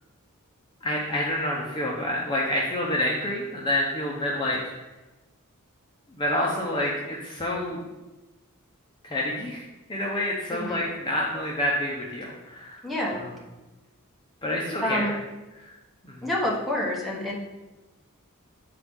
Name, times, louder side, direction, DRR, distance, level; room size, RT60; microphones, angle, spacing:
voice 1, 0.8-4.7 6.1-7.8 9.0-9.6 9.9-12.8 14.4-15.0 15.6-15.7 16.0-16.2, left 1 dB, 20° left, -3 dB, 0.7 m, -28 dB
voice 2, 10.5-10.8 12.8-13.3 14.8-15.1 16.2-17.3, left 1 dB, ahead, -3 dB, 1.1 m, -28 dB
8.5 x 4.1 x 3.5 m, 1.1 s
head